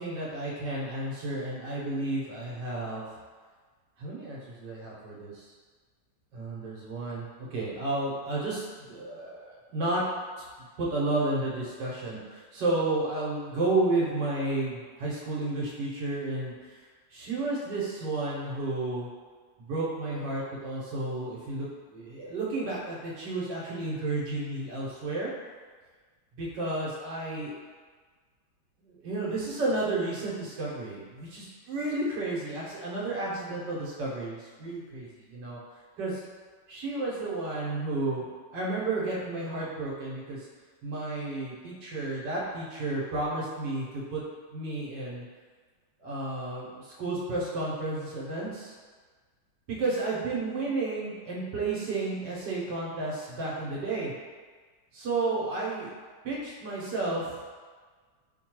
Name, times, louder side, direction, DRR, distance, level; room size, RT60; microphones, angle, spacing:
voice 1, 0.0-3.1 4.0-5.5 6.3-10.0 10.4-16.8 17.1-19.1 19.6-25.3 26.4-27.5 28.8-35.6 36.0-36.2 36.7-38.3 38.5-40.5 40.8-44.2 44.5-45.2 46.0-48.8 49.7-54.1 54.9-55.9 56.2-57.4, right 2 dB, 80° right, -5 dB, 1.6 m, -32 dB
3.3 x 2.2 x 4.4 m, 1.5 s
omnidirectional pair, 1.9 m